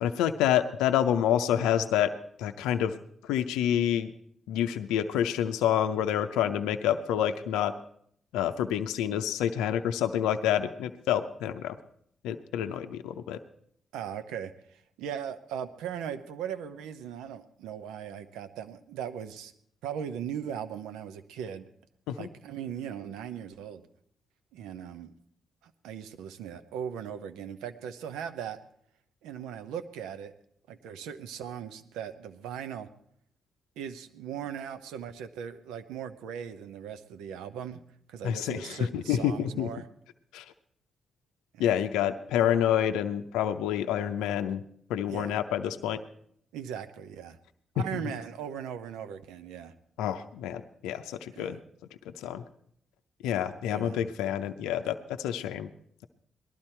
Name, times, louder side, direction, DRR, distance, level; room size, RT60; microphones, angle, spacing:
voice 1, 0.0-2.1 2.4-2.9 3.2-4.1 4.5-7.7 8.3-11.8 12.2-13.4 22.1-22.3 38.2-39.7 40.3-40.4 41.6-44.6 44.9-46.0 47.8-48.0 50.0-51.6 52.2-52.4 53.2-55.7, left 10 dB, 85° left, 7 dB, 0.5 m, -28 dB
voice 2, 13.9-14.5 15.0-19.5 19.8-21.7 22.1-23.8 24.5-25.1 25.6-28.6 29.2-30.3 30.7-32.9 33.8-37.8 38.1-39.9 41.5-41.7 45.1-45.4 46.5-47.4 47.7-49.7 51.3-51.6 53.7-54.1, right 8 dB, 85° right, 11 dB, 0.7 m, -38 dB
19.0 x 12.0 x 4.4 m, 0.66 s
supercardioid pair, 45°, 0 cm